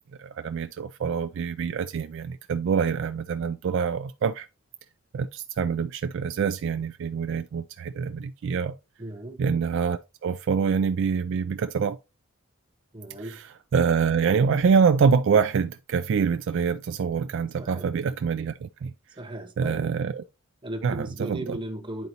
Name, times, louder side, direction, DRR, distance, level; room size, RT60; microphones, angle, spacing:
voice 1, 0.2-4.5 5.1-8.7 9.4-12.0 13.2-18.9 19.6-20.2 20.8-21.6, right 6 dB, 55° right, 0.3 m, -25 dB
voice 2, 9.0-9.4 12.9-13.4 17.6-17.9 19.2-20.0 20.6-22.1, right 1 dB, 20° right, 0.9 m, -37 dB
10.5 x 4.0 x 2.7 m
head